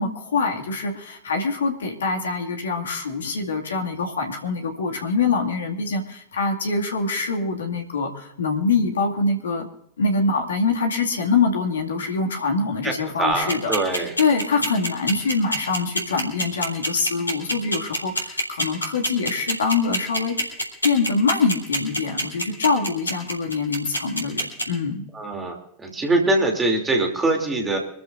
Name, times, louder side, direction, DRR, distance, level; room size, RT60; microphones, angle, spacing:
voice 1, 0.0-9.7 10.0-20.3 20.8-25.0, left 4 dB, 65° left, 2 dB, 2.2 m, -24 dB
voice 2, 13.2-14.1 25.1-25.6 25.8-27.8, right 2 dB, 15° right, 2 dB, 3.0 m, -22 dB
sound 1, 13.3-24.6, equal, 85° left, 3.8 m, -24 dB
25.5 x 14.5 x 2.6 m, 0.74 s
figure-of-eight pair, 90°, 0 cm